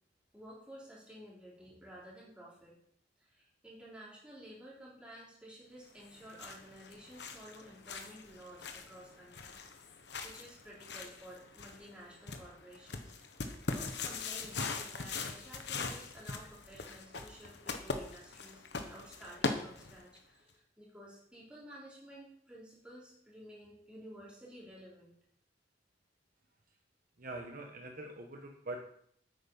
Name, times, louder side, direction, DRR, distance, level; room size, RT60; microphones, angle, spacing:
voice 1, 0.3-2.7 3.2-13.1 13.7-25.1, equal, 5° right, -6 dB, 3.8 m, -53 dB
sound 1, 6.0-20.2, left 4 dB, 65° left, 1.2 m, -41 dB
voice 2, 27.2-28.8, right 2 dB, 50° right, 2 dB, 1.2 m, -43 dB
9.1 x 8.6 x 5.5 m, 0.68 s
head